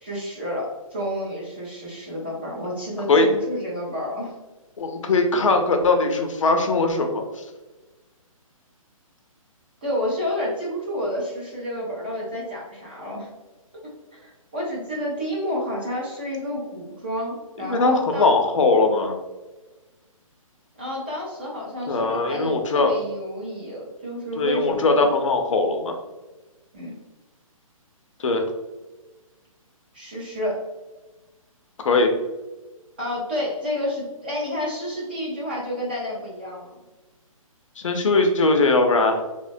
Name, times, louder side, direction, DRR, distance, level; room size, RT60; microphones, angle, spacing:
voice 1, 0.0-4.3 9.8-13.3 14.1-18.3 20.8-25.1 26.7-26.9 29.9-30.6 33.0-36.8, equal, 15° right, -5 dB, 0.4 m, -30 dB
voice 2, 4.8-7.4 17.6-19.2 21.9-22.9 24.4-26.0 28.2-28.4 31.8-32.1 37.8-39.2, left 3 dB, 60° left, 4 dB, 0.5 m, -20 dB
3.0 x 2.1 x 2.5 m, 1.2 s
hypercardioid pair, 170°, 18 cm